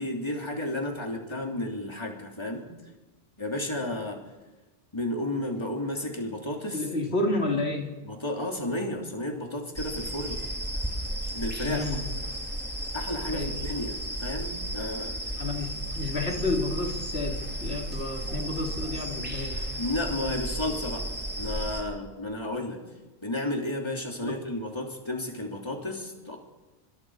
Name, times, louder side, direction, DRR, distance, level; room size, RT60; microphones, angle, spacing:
voice 1, 0.0-2.7 3.4-4.2 4.9-6.8 8.0-10.4 11.3-11.9 12.9-14.0 14.2-15.1 19.8-21.1 21.4-22.8 23.2-26.4, left 1 dB, 25° left, 1 dB, 3.3 m, -32 dB
voice 2, 6.7-7.9 11.7-12.1 13.3-13.6 15.4-19.7 24.2-24.3, left 2 dB, 85° left, 1 dB, 3.4 m, -30 dB
sound 1, 9.8-21.8, equal, 10° right, 2.7 m, -34 dB
26.5 x 25.0 x 5.0 m, 1.1 s
omnidirectional pair, 1.1 m